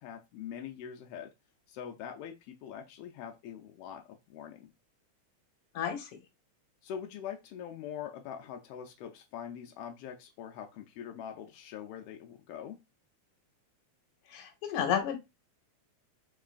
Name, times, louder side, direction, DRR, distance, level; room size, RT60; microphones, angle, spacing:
voice 1, 0.0-1.3 1.7-4.7 6.8-12.8, left 8 dB, 90° left, 4 dB, 1.3 m, -43 dB
voice 2, 5.7-6.1 14.3-15.1, left 9 dB, 65° left, 5 dB, 1.5 m, -31 dB
3.8 x 3.5 x 2.4 m, 0.23 s
omnidirectional pair, 3.3 m